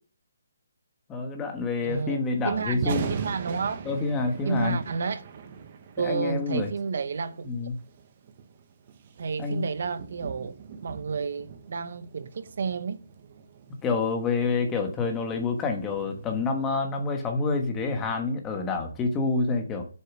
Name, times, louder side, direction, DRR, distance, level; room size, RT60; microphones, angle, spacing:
voice 1, 1.1-3.2 3.8-4.8 6.0-6.7 7.4-7.7 9.4-9.6 13.8-19.8, left 4 dB, 10° left, 1.3 m, -28 dB
voice 2, 1.8-3.9 4.4-5.2 6.0-7.5 9.2-10.5 10.8-13.0, right 5 dB, 55° right, 1.0 m, -31 dB
Thunder, 2.7-16.8, right 6 dB, 30° right, 1.1 m, -40 dB
7.9 x 6.6 x 6.0 m
hypercardioid pair, 170°, 0 cm